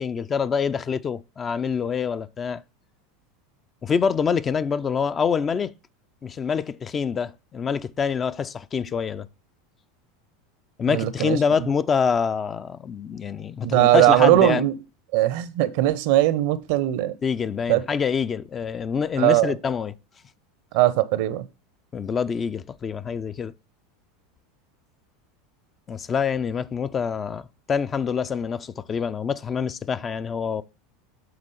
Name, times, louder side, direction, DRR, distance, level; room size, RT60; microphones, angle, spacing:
voice 1, 0.0-2.6 3.8-5.7 6.2-9.3 10.8-14.6 17.2-19.9 21.9-23.5 25.9-30.6, left 6 dB, 30° left, 0.4 m, -26 dB
voice 2, 10.9-11.4 13.6-14.7 15.1-17.1 17.7-17.8 19.2-19.5 20.7-21.4, right 15 dB, 65° right, 0.6 m, -19 dB
7.7 x 3.7 x 5.4 m
hypercardioid pair, 90°, 0 cm